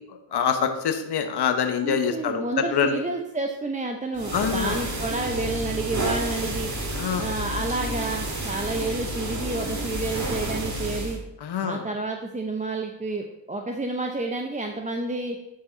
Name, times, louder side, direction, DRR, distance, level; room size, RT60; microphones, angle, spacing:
voice 1, 0.3-3.0 4.3-4.8 6.9-7.3 11.4-11.8, left 7 dB, 55° left, 6 dB, 1.0 m, -25 dB
voice 2, 1.8-6.7 7.2-11.2 11.6-15.4, right 2 dB, 15° right, 3 dB, 0.7 m, -30 dB
sound 1, 4.1-11.2, right 1 dB, 35° right, 2.0 m, -30 dB
11.0 x 4.7 x 4.0 m, 0.91 s
cardioid pair, 65°, 47 cm